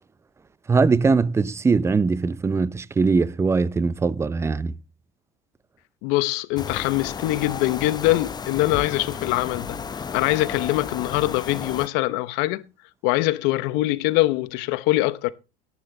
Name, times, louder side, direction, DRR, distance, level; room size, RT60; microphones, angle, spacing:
voice 1, 0.7-4.7, right 4 dB, 15° right, 0.5 m, -21 dB
voice 2, 6.0-9.8 10.1-12.6 13.0-15.3, left 18 dB, 75° left, 1.0 m, -23 dB
sound 1, 6.5-11.9, left 6 dB, 20° left, 0.8 m, -33 dB
11.5 x 10.5 x 4.0 m
supercardioid pair, 120°, 18 cm